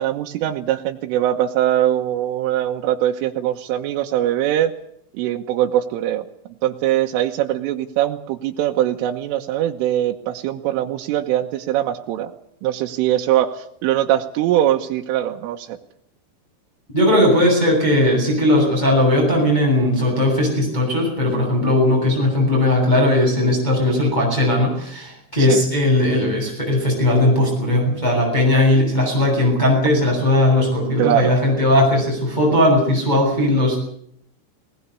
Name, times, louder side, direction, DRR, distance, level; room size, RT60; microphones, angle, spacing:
voice 1, 0.0-4.7 5.1-6.3 6.6-12.3 12.6-15.8 25.4-25.6 31.0-31.4, right 12 dB, 90° right, 2 dB, 3.8 m, -21 dB
voice 2, 16.9-33.8, left 1 dB, 10° left, -1 dB, 7.9 m, -18 dB
20.5 x 19.5 x 8.3 m, 0.68 s
omnidirectional pair, 5.6 m